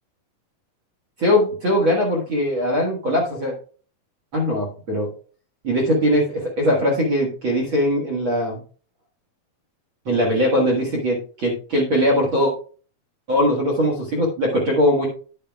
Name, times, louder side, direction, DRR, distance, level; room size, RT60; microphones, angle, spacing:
voice 1, 1.2-3.5 4.3-5.1 5.6-8.6 10.0-12.5 13.3-15.1, equal, 50° right, -1 dB, 1.6 m, -20 dB
9.7 x 8.8 x 2.3 m, 0.41 s
omnidirectional pair, 4.2 m